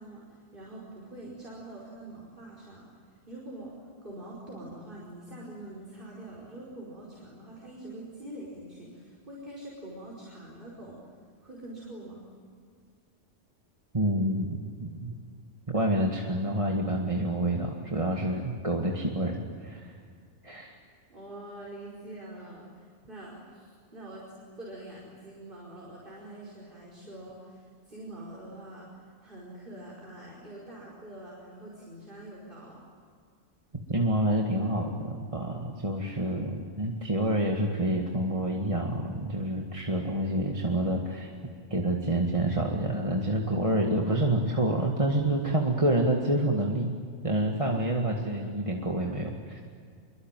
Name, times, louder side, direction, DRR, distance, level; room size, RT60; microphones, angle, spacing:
voice 1, 0.0-2.9 3.3-11.0 11.4-12.2 21.1-32.8, right 1 dB, 45° right, -5 dB, 5.4 m, -45 dB
voice 2, 13.9-15.2 15.7-19.9 20.4-20.8 33.9-41.3 41.7-46.9 47.2-49.6, right 1 dB, 25° right, 0 dB, 2.1 m, -28 dB
26.0 x 24.0 x 9.2 m, 2.1 s
omnidirectional pair, 1.3 m